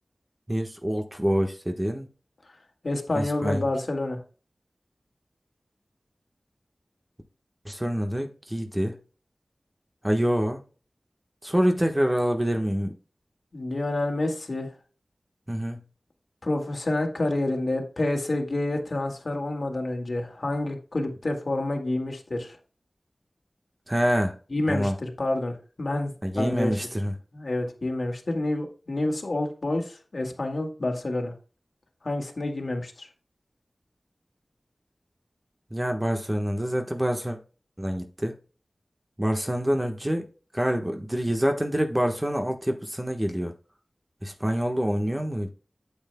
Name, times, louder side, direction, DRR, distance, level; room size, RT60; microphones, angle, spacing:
voice 1, 0.5-2.1 3.1-3.6 7.6-8.9 10.0-10.6 11.4-12.9 15.5-15.8 23.9-24.4 24.7-24.9 26.2-27.1 35.7-37.4 37.8-38.3 39.2-40.3 40.5-43.5 44.2-45.5, equal, 20° right, 1.2 m, -26 dB
voice 2, 2.8-4.2 13.5-14.7 16.4-22.6 24.5-26.8 27.3-31.3 32.0-33.1, left 2 dB, 65° left, 1.8 m, -28 dB
8.8 x 8.2 x 2.2 m
wide cardioid pair, 50°, 0 cm